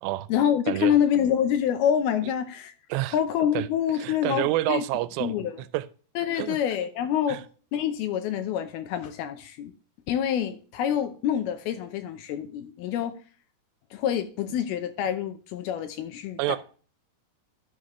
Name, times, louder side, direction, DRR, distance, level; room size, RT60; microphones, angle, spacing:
voice 1, 0.3-2.7 3.1-4.8 5.2-5.6 6.2-7.4 7.7-9.7 10.1-13.1 13.9-16.6, left 9 dB, 80° left, 2.3 m, -26 dB
voice 2, 4.0-5.4 5.7-5.9 6.4-6.6 7.3-7.4 16.4-16.6, right 17 dB, 90° right, 2.8 m, -28 dB
11.0 x 6.3 x 3.0 m
omnidirectional pair, 4.9 m